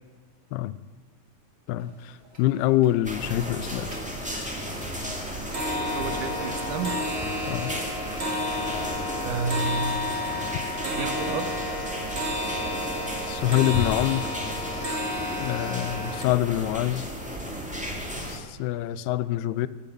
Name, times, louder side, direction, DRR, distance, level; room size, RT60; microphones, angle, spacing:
voice 1, 1.7-3.9 7.5-7.8 13.3-14.3 15.4-17.1 18.3-19.7, left 14 dB, 90° left, 16 dB, 2.6 m, -25 dB
sound 1, 1.9-2.0 2.3-2.9 3.3-3.6 3.9-16.2, left 1 dB, 25° right, 1.9 m, -32 dB
sound 2, 3.0-18.4, equal, 5° right, 0.7 m, -34 dB
voice 2, 5.9-6.9 9.2-9.9 10.8-11.5 18.1-18.3, right 5 dB, 65° right, 9 dB, 2.5 m, -31 dB
14.0 x 11.0 x 7.7 m, 1.4 s
omnidirectional pair, 4.5 m